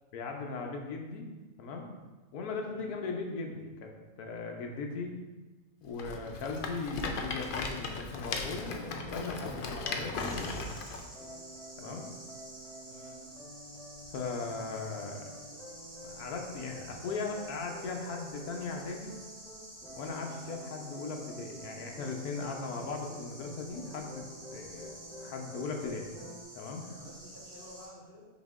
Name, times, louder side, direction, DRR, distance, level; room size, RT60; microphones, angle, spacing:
voice 1, 0.1-1.3 1.6-1.9 2.3-3.9 4.2-5.1 5.8-10.7 11.8-12.1 14.1-15.3 16.0-19.1 20.0-24.2 24.5-24.9 25.2-26.1 26.5-26.8, left 4 dB, 90° left, 2 dB, 1.3 m, -38 dB
Rattle, 5.9-11.0, left 4 dB, 70° left, 0.5 m, -37 dB
sound 1, 8.3-10.7 11.1-26.4, equal, 5° left, 1.0 m, -49 dB
sound 2, 10.2-27.8, right 1 dB, 75° right, 2.6 m, -50 dB
voice 2, 12.9-13.2 20.1-20.6 26.8-28.3, left 1 dB, 40° right, -8 dB, 2.4 m, -52 dB
6.2 x 4.3 x 3.6 m, 1.3 s
omnidirectional pair, 1.6 m